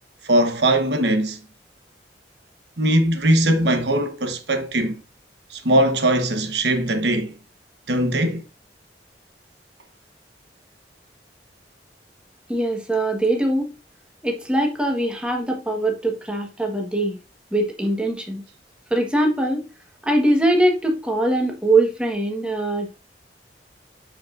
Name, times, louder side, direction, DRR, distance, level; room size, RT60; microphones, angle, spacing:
voice 1, 0.2-1.4 2.8-5.0 5.5-7.3 7.9-8.4, right 1 dB, 75° right, 1.0 m, -20 dB
voice 2, 12.5-13.7 14.2-17.2 17.5-18.4 18.9-19.6 20.0-22.9, right 1 dB, 5° right, 1.3 m, -22 dB
10.0 x 5.1 x 2.5 m
head